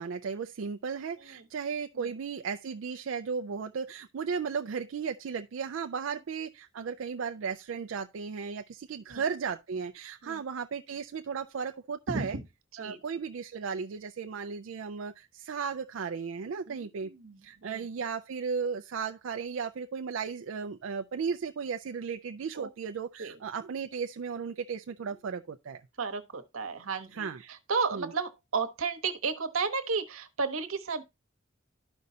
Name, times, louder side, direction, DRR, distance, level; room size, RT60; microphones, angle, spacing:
voice 1, 0.0-12.4 12.8-17.1 17.4-25.8 27.1-27.4 27.9-28.1, right 6 dB, 70° right, 0.4 m, -35 dB
voice 2, 12.1-12.4 12.7-13.0 16.7-17.9 22.5-22.7 23.2-23.4 26.0-31.0, right 4 dB, 90° right, 1.0 m, -33 dB
12.5 x 5.3 x 2.7 m
head